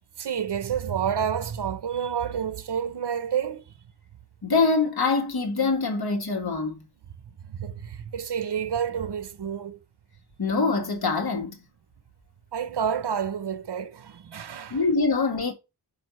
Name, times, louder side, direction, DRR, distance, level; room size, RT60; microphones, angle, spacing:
voice 1, 0.2-3.6 7.4-9.8 12.5-14.8, right 8 dB, 80° right, 1.0 m, -29 dB
voice 2, 4.4-6.9 10.4-11.6 14.7-15.5, left 4 dB, 65° left, 1.9 m, -24 dB
5.3 x 5.0 x 6.3 m
wide cardioid pair, 80°, 41 cm